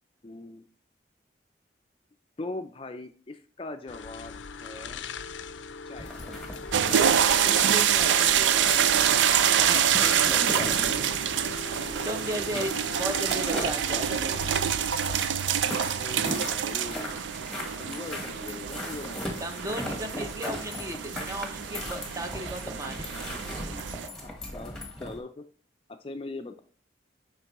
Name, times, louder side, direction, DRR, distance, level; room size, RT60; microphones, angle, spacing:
voice 1, 0.2-0.6 2.4-5.1 5.8-6.2 10.3-11.1 15.9-17.2 17.8-19.3 24.2-25.5 26.0-26.6, left 2 dB, 30° left, 8 dB, 0.4 m, -40 dB
sound 1, 3.9-15.1, left 4 dB, 85° left, 0.5 m, -41 dB
sound 2, 6.0-25.2, left 1 dB, 5° left, 1.1 m, -38 dB
sound 3, 6.7-24.1, right 9 dB, 80° right, 0.4 m, -26 dB
voice 2, 7.4-9.2 9.5-10.7 11.7-14.5 19.4-23.1, right 1 dB, 20° right, 6 dB, 0.6 m, -36 dB
7.9 x 5.2 x 3.0 m, 0.42 s
head